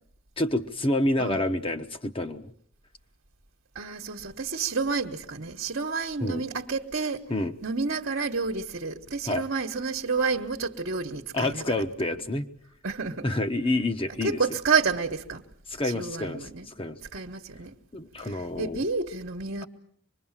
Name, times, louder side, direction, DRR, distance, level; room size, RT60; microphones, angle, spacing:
voice 1, 0.4-2.5 6.2-6.4 7.3-7.5 9.3-9.4 11.3-12.5 13.2-14.4 15.7-17.0 17.9-18.8, left 1 dB, 25° left, 1.1 m, -28 dB
voice 2, 3.7-7.2 7.6-11.8 12.8-13.3 14.2-15.4 15.8-16.7 17.1-17.8 18.2-19.7, right 4 dB, 60° right, 1.3 m, -30 dB
25.0 x 21.5 x 7.4 m
head